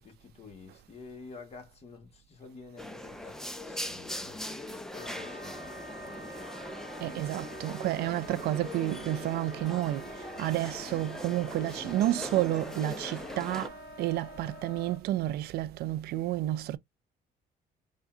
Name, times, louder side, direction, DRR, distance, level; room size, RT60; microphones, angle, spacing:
voice 1, 0.0-6.4, left 4 dB, 35° left, 1.2 m, -50 dB
sound 1, 2.8-13.7, left 1 dB, 5° left, 0.4 m, -41 dB
Wind instrument woodwind instrument, 4.9-15.0, equal, 55° left, 1.4 m, -47 dB
voice 2, 7.0-10.1 10.4-16.8, right 14 dB, 70° right, 0.4 m, -30 dB
3.7 x 2.2 x 2.4 m
cardioid pair, 110°, 17 cm